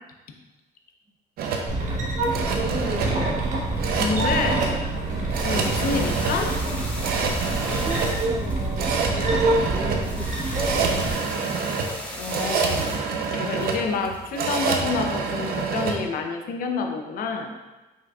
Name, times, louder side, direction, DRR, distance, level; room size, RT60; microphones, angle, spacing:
sound 1, 1.4-16.0, right 5 dB, 65° right, 0.6 m, -27 dB
sound 2, 1.7-11.2, right 2 dB, 45° right, 1.0 m, -26 dB
voice 1, 2.5-3.4 5.9-6.1 7.7-9.1 9.7-11.5, right 2 dB, 15° right, 3 dB, 0.5 m, -34 dB
voice 2, 4.0-4.6 5.4-6.5 12.2-12.9 13.3-17.5, left 4 dB, 60° left, 4 dB, 0.6 m, -28 dB
sound 3, 5.3-14.8, left 1 dB, 10° left, 0.9 m, -38 dB
5.1 x 3.9 x 2.3 m, 1.1 s
cardioid pair, 110°, 17 cm